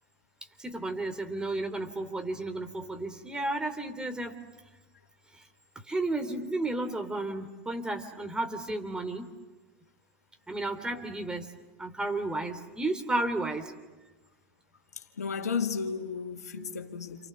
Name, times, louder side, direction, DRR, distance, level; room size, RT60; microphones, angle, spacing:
voice 1, 0.6-4.4 5.3-5.4 5.8-9.3 10.5-11.5 11.8-13.7 16.6-16.8, right 2 dB, 10° right, 3.1 m, -33 dB
voice 2, 15.2-17.2, left 6 dB, 85° left, 2.2 m, -33 dB
30.0 x 28.5 x 7.0 m
hypercardioid pair, 100°, 8 cm